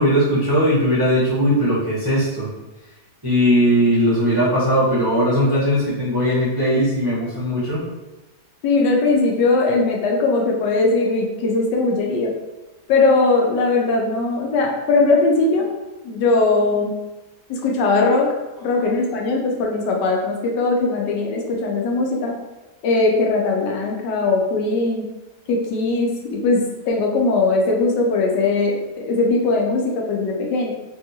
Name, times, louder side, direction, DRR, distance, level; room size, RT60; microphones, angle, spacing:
voice 1, 0.0-2.5 3.2-7.8, equal, 20° right, -10 dB, 0.6 m, -19 dB
voice 2, 8.6-12.3 12.9-15.7 16.0-16.9 17.5-18.3 18.6-22.4 22.8-25.1 25.5-30.7, left 3 dB, 85° left, 0 dB, 1.3 m, -19 dB
3.4 x 2.3 x 2.8 m, 1.1 s
omnidirectional pair, 1.8 m